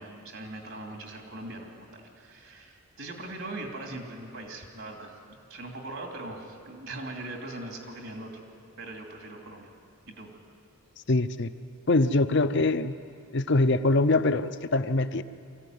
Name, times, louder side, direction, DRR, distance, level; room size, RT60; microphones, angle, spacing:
voice 1, 0.0-8.4 8.8-9.7 10.1-10.3, right 2 dB, 65° right, 1 dB, 2.9 m, -40 dB
voice 2, 11.1-11.5 11.9-12.9 13.3-15.2, left 2 dB, 50° left, 12 dB, 0.7 m, -23 dB
23.5 x 15.5 x 9.5 m, 2.5 s
head